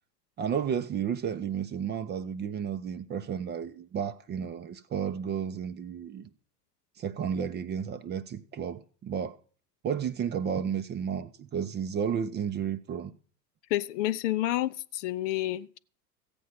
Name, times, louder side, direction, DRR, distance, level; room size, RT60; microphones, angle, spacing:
voice 1, 0.4-6.3 7.0-9.4 9.8-13.1, right 7 dB, 20° right, 0.6 m, -32 dB
voice 2, 13.7-15.8, left 14 dB, 50° left, 0.6 m, -29 dB
15.0 x 8.3 x 5.8 m
hypercardioid pair, 95°, 48 cm